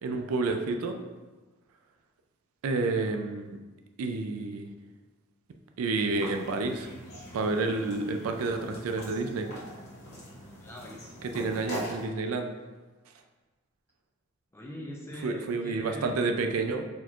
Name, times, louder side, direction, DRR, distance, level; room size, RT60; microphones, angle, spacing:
voice 1, 0.0-1.0 2.6-3.6 4.0-4.7 5.8-6.9 7.3-9.5 11.2-12.5 15.2-16.8, right 3 dB, 90° right, 5 dB, 0.4 m, -29 dB
sound 1, 6.1-12.0, equal, 50° left, 1.3 m, -42 dB
voice 2, 10.6-11.2 14.5-16.2, left 1 dB, 10° left, -1 dB, 0.5 m, -42 dB
4.3 x 2.4 x 4.4 m, 1.2 s
head